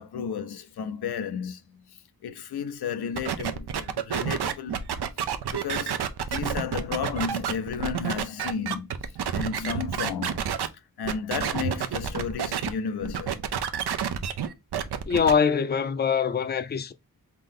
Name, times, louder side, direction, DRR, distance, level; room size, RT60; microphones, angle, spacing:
voice 1, 0.0-4.9 5.5-10.5 11.0-13.4, left 6 dB, 85° left, 0.5 m, -33 dB
sound 1, 3.1-10.7 11.0-12.7 13.0-15.3, right 8 dB, 85° right, 0.6 m, -29 dB
voice 2, 15.1-16.9, left 6 dB, 25° left, 0.4 m, -23 dB
3.8 x 2.6 x 3.6 m
cardioid pair, 55°, 38 cm